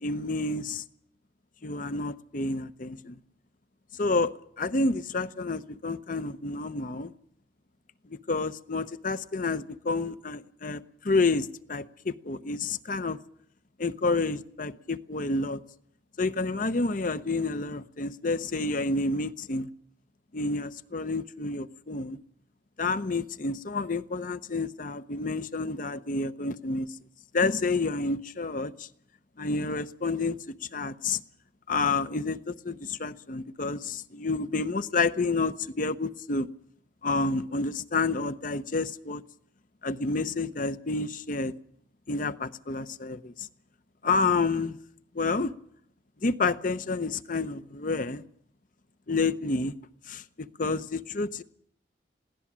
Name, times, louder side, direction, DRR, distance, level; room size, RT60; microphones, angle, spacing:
voice 1, 0.0-0.8 1.6-3.2 3.9-7.1 8.1-13.2 13.8-15.6 16.2-19.7 20.3-22.2 22.8-26.9 27.3-28.9 29.4-30.4 30.7-31.2 31.7-36.5 37.0-39.2 39.8-41.5 42.1-43.5 44.0-44.8 45.1-45.5 46.2-48.2 49.1-49.8 50.1-51.4, left 3 dB, 50° left, 0.8 m, -29 dB
21.5 x 17.0 x 7.4 m
head